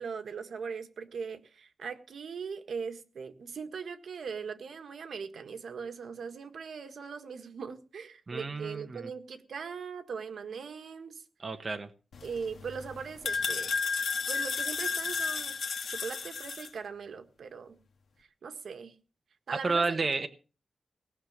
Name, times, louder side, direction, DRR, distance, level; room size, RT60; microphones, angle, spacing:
voice 1, 0.0-11.2 12.2-13.7 14.3-15.6 15.9-17.8 18.2-18.9 19.5-20.3, right 6 dB, 75° right, 8 dB, 1.6 m, -40 dB
voice 2, 8.3-9.1 11.4-11.9 19.6-20.3, right 4 dB, 35° right, 7 dB, 1.0 m, -31 dB
sound 1, 12.1-16.7, left 5 dB, 80° left, 1.7 m, -33 dB
18.5 x 6.4 x 7.2 m, 0.37 s
wide cardioid pair, 125°, 0 cm